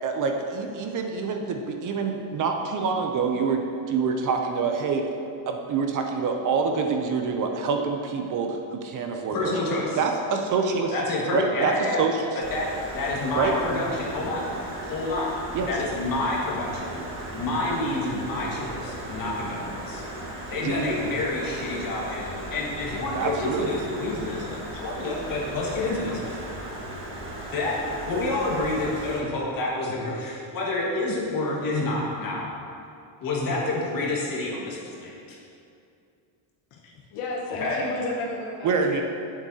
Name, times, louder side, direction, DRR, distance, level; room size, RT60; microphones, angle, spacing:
voice 1, 0.0-5.0 5.5-9.5 10.0-10.9 11.3-12.3 13.3-13.5 15.5-15.7 20.6-21.0 23.1-23.7 38.6-39.0, right 5 dB, 40° right, 4 dB, 0.5 m, -26 dB
voice 2, 9.3-10.0 10.9-12.0 12.3-14.4 14.9-15.3 15.7-17.0 17.3-20.0 20.5-26.4 27.5-27.8 28.1-32.5 33.2-35.4 37.6-37.8, left 2 dB, 40° left, -4 dB, 1.7 m, -28 dB
Stream, 12.4-29.2, right 1 dB, 25° right, 1.3 m, -37 dB
voice 3, 36.8-38.7, left 2 dB, 80° left, -3 dB, 1.2 m, -32 dB
9.0 x 7.4 x 2.8 m, 2.5 s
cardioid pair, 155°, 49 cm